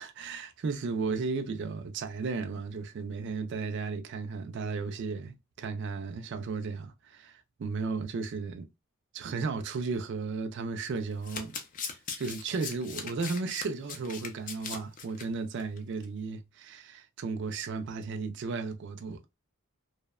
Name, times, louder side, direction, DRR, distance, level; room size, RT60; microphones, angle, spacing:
voice 1, 0.0-8.7 9.1-11.6 12.2-19.3, right 4 dB, 55° right, 0.3 m, -34 dB
Domestic sounds home sounds, 11.1-15.3 15.6-15.8 16.0-16.1, left 6 dB, 35° left, 0.4 m, -40 dB
2.7 x 2.0 x 2.2 m
head